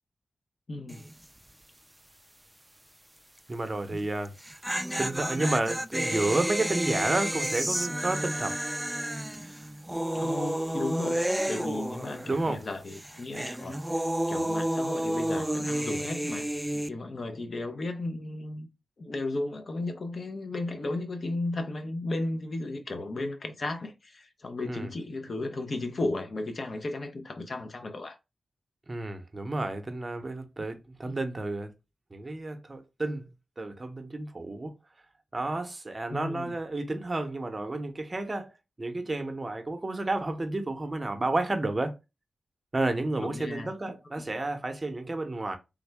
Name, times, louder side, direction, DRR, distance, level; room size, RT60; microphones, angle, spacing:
voice 1, 0.7-1.1 3.9-4.0 10.1-11.2 11.5-16.5 16.9-18.7 19.0-28.2 36.1-36.5 43.2-43.7 44.2-44.3, left 2 dB, 60° left, 0.6 m, -34 dB
sound 1, 0.9-1.2 1.5-1.6 4.2-12.6 12.9-16.9, right 1 dB, 10° right, 0.3 m, -31 dB
voice 2, 3.5-4.3 5.0-8.6 12.2-12.6 24.6-24.9 28.9-31.7 32.1-33.3 33.6-34.7 35.3-38.5 38.8-41.9 42.7-45.6, right 2 dB, 35° right, 0.7 m, -31 dB
3.5 x 2.1 x 3.3 m
cardioid pair, 55°, 0 cm